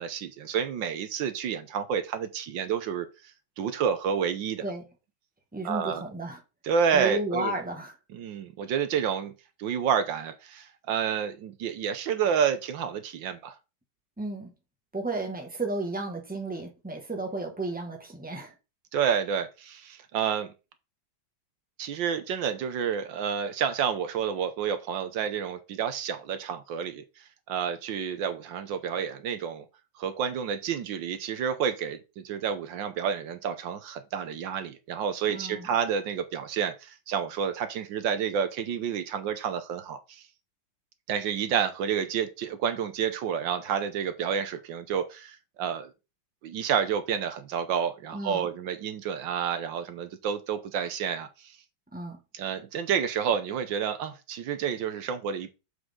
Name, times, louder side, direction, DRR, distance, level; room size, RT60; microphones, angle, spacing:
voice 1, 0.0-3.1 3.6-4.6 5.6-6.0 6.6-7.5 8.1-9.3 9.6-13.5 18.9-20.5 21.8-27.0 27.5-29.6 30.0-40.3 41.1-45.9 46.4-51.6 52.3-55.5, right 7 dB, 75° right, 1.5 m, -29 dB
voice 2, 5.5-6.4 6.9-7.9 14.2-14.5 14.9-18.5 35.3-35.7 48.1-48.5 51.9-52.2, right 2 dB, 5° right, 1.6 m, -33 dB
7.2 x 6.5 x 3.8 m
omnidirectional pair, 2.1 m